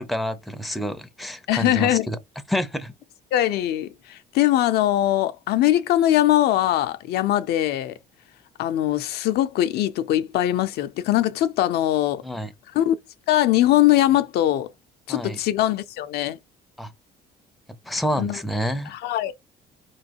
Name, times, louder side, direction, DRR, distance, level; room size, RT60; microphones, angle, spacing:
voice 1, 0.0-2.2 2.5-2.9 12.2-12.5 15.1-15.4 16.8-16.9 17.8-18.9, equal, ahead, 0.5 m, -28 dB
voice 2, 1.5-2.1 3.3-8.0 8.6-12.2 12.7-12.9 13.3-14.7 15.1-16.4 18.2-18.4 18.9-19.3, left 13 dB, 75° left, 0.4 m, -21 dB
4.2 x 3.1 x 2.8 m
cardioid pair, 110°, 17 cm